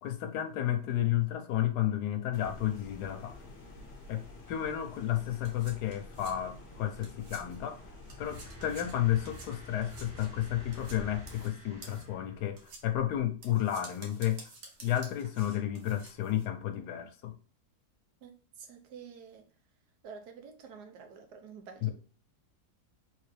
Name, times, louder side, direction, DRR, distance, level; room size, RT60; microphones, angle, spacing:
voice 1, 0.0-3.3 4.1-7.8 8.2-14.4 14.8-17.3 21.8-21.9, left 12 dB, 85° left, 1.2 m, -32 dB
sound 1, 2.3-11.5, left 2 dB, 45° left, 1.1 m, -49 dB
sound 2, 4.9-7.7 8.0-16.5, right 3 dB, 65° right, 1.4 m, -51 dB
sound 3, 8.2-12.9, left 1 dB, 30° right, 0.6 m, -51 dB
voice 2, 18.6-19.5 20.0-21.9, right 6 dB, 85° right, 1.3 m, -48 dB
3.7 x 3.1 x 3.1 m
omnidirectional pair, 1.7 m